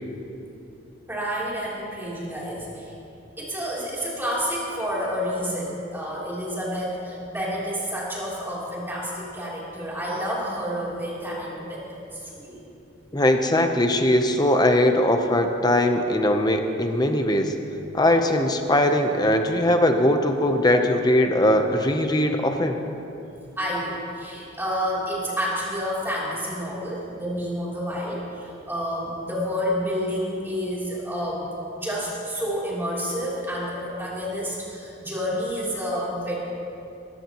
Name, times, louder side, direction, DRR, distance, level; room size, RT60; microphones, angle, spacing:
voice 1, 1.1-2.9 3.4-12.6 23.6-31.5 31.8-36.3, equal, 10° right, -7 dB, 3.3 m, -29 dB
voice 2, 13.1-17.5 17.9-22.8, left 1 dB, 20° left, 5 dB, 0.8 m, -20 dB
20.0 x 14.5 x 3.1 m, 2.8 s
head